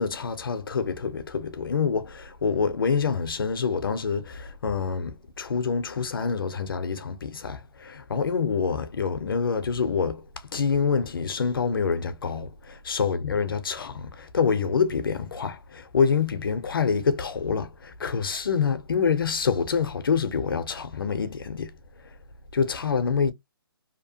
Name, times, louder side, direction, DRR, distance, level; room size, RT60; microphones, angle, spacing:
voice 1, 0.0-10.3 10.5-21.7 22.0-22.1 22.5-23.3, left 6 dB, 60° left, 0.6 m, -26 dB
2.8 x 2.0 x 2.6 m
hypercardioid pair, 165°, 13 cm